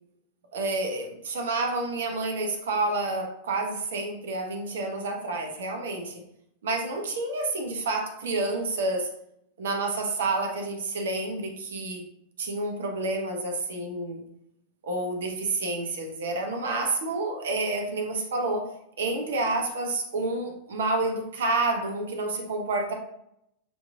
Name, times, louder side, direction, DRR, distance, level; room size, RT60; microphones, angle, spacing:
voice 1, 0.5-6.2 6.6-9.1 9.6-12.0 12.4-14.2 14.8-18.7 19.0-22.9, right 2 dB, 60° right, 3 dB, 0.8 m, -29 dB
6.1 x 3.1 x 2.4 m, 0.76 s
figure-of-eight pair, 90°, 0 cm